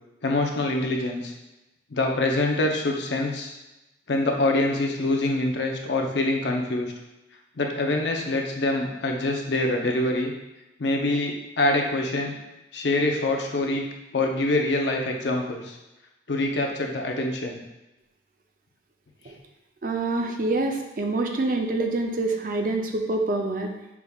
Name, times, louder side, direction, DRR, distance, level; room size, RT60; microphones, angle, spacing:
voice 1, 0.2-1.3 1.9-3.5 4.1-6.9 7.6-10.3 10.8-12.3 12.7-13.9 14.1-15.8 16.3-17.6, left 2 dB, 70° left, 2 dB, 0.6 m, -25 dB
voice 2, 19.8-23.7, right 2 dB, 45° right, 4 dB, 0.5 m, -26 dB
5.8 x 3.4 x 2.3 m, 1.0 s
head